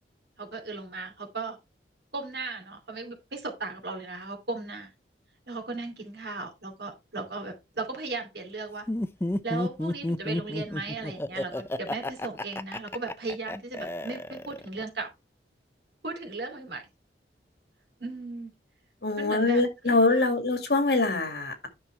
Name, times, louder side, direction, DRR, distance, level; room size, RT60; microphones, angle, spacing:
voice 1, 0.4-1.6 2.1-4.9 5.5-8.9 9.4-15.1 16.0-16.8 18.0-18.5 19.2-20.3, right 3 dB, 70° right, 2.7 m, -36 dB
Laughter, 8.9-14.8, left 1 dB, 15° left, 0.4 m, -31 dB
voice 2, 19.0-21.7, left 3 dB, 60° left, 2.1 m, -24 dB
9.9 x 6.0 x 3.2 m
head